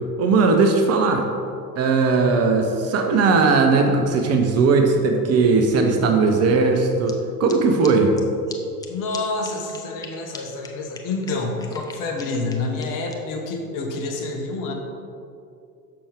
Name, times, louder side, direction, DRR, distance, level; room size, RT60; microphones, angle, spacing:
voice 1, 0.2-1.2 1.8-8.1, right 4 dB, 35° right, 3 dB, 0.7 m, -18 dB
sound 1, 7.1-7.2 7.5-7.6 7.8-7.9 8.2-8.3 8.5-8.6 8.8-8.9 9.1-9.2 9.4-10.1 10.3-10.4 10.6-10.7 10.9-13.1, left 5 dB, 10° left, 0.3 m, -39 dB
voice 2, 8.9-14.7, left 3 dB, 40° left, 1 dB, 1.2 m, -28 dB
7.0 x 5.7 x 3.5 m, 2.5 s
figure-of-eight pair, 75°, 46 cm